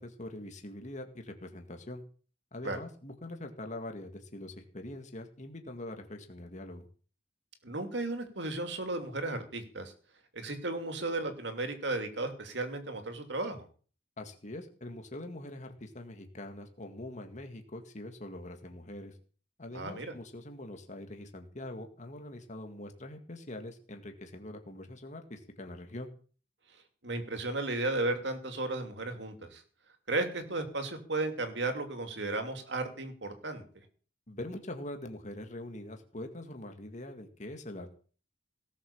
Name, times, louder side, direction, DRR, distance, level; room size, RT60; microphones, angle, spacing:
voice 1, 0.0-2.0 2.5-6.9 14.2-19.1 19.6-26.1 34.3-37.9, left 1 dB, 40° left, 5 dB, 2.0 m, -43 dB
voice 2, 7.6-9.9 10.3-13.7 19.7-20.1 27.0-29.6 30.1-33.6, right 2 dB, 70° right, 6 dB, 2.8 m, -34 dB
18.0 x 7.2 x 7.2 m, 0.42 s
head